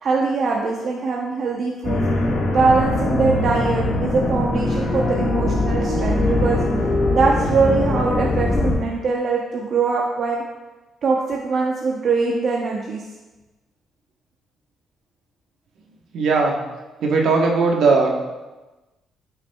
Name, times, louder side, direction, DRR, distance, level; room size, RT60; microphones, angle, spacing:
voice 1, 0.0-2.0 2.5-6.6 7.1-10.4 11.0-13.0, right 4 dB, 55° right, -1 dB, 0.7 m, -22 dB
sound 1, 1.8-8.7, left 2 dB, 55° left, 1.5 m, -21 dB
voice 2, 16.1-16.6 17.0-18.1, right 4 dB, 75° right, 1 dB, 1.1 m, -18 dB
8.7 x 5.8 x 2.3 m, 1.1 s
cardioid pair, 90°, 0 cm